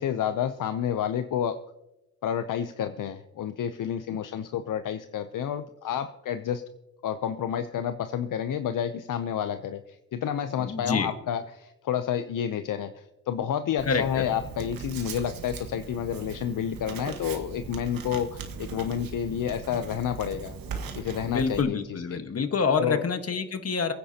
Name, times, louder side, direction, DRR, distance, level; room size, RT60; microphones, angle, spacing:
voice 1, 0.0-1.6 2.2-6.6 7.0-20.6 20.9-22.2 22.8-23.0, left 9 dB, 65° left, 10 dB, 0.7 m, -30 dB
voice 2, 10.6-11.1 13.9-14.2 21.3-23.9, left 5 dB, 45° left, 8 dB, 1.4 m, -27 dB
Writing, 13.8-21.6, right 5 dB, 85° right, 1.7 m, -39 dB
27.5 x 9.8 x 2.9 m, 0.93 s
cardioid pair, 85°, 34 cm